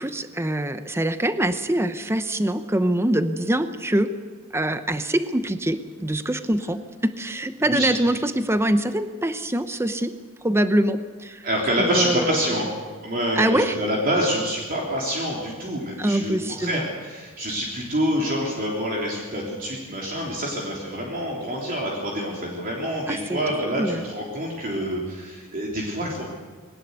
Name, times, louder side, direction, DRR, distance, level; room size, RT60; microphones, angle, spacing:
voice 1, 0.0-4.1 4.5-10.1 10.4-11.5 11.8-12.6 13.3-13.8 16.0-16.9 23.1-23.4 23.8-24.0, right 1 dB, 10° right, 10 dB, 0.8 m, -24 dB
voice 2, 11.4-12.7 13.0-26.2, equal, 45° right, -2 dB, 3.4 m, -26 dB
21.0 x 19.0 x 8.2 m, 1.5 s
head